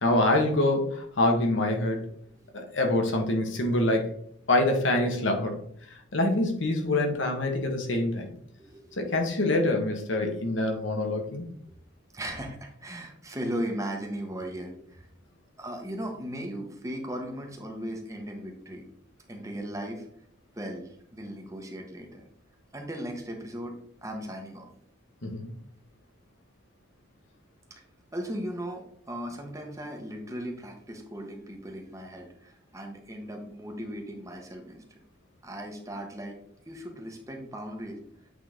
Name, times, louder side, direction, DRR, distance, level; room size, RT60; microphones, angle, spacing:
voice 1, 0.0-2.0 2.5-4.1 4.5-5.6 6.1-8.3 9.0-11.4 25.2-25.5, left 2 dB, 70° left, 3 dB, 1.4 m, -25 dB
voice 2, 8.6-9.0 12.1-15.1 15.6-18.9 19.3-20.1 20.5-22.3 22.7-23.7 24.0-24.7 28.1-35.0 35.4-36.4 36.6-38.0, equal, 15° right, 2 dB, 1.2 m, -37 dB
8.2 x 3.9 x 3.8 m, 0.66 s
head